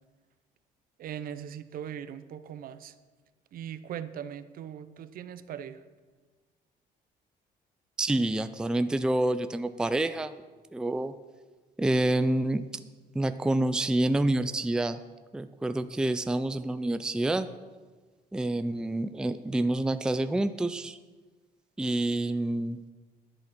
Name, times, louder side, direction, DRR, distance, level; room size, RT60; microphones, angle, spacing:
voice 1, 1.0-2.9 3.5-5.8, right 9 dB, 60° right, 13 dB, 0.7 m, -40 dB
voice 2, 8.0-10.3 10.7-11.1 11.8-12.6 13.1-15.0 15.3-17.5 18.3-21.0 21.8-22.8, right 1 dB, 5° right, 11 dB, 0.4 m, -27 dB
11.0 x 7.7 x 6.0 m, 1.3 s
cardioid pair, 110°, 17 cm